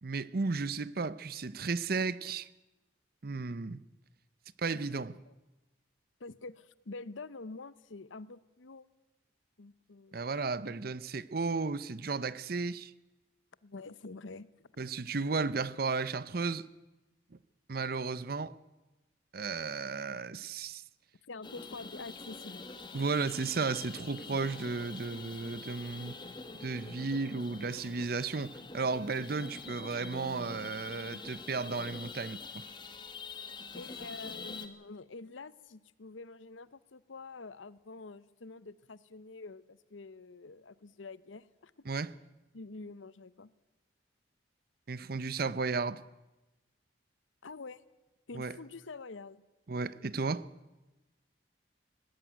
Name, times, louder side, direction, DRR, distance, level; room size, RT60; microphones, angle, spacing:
voice 1, 0.0-2.5 3.2-3.8 4.6-5.2 10.1-12.9 14.8-16.7 17.7-18.6 19.3-20.8 22.9-26.1 26.6-28.5 28.7-32.6 41.9-42.1 44.9-46.0 48.3-48.6 49.7-50.5, right 4 dB, 50° right, 0.7 m, -34 dB
voice 2, 6.2-8.8 9.6-10.3 13.6-14.5 21.3-22.6 33.7-41.7 42.5-43.5 47.4-47.8 48.3-49.4, left 3 dB, 85° left, 0.8 m, -47 dB
sound 1, 21.4-34.7, left 4 dB, 25° left, 1.4 m, -45 dB
19.5 x 15.0 x 9.2 m
head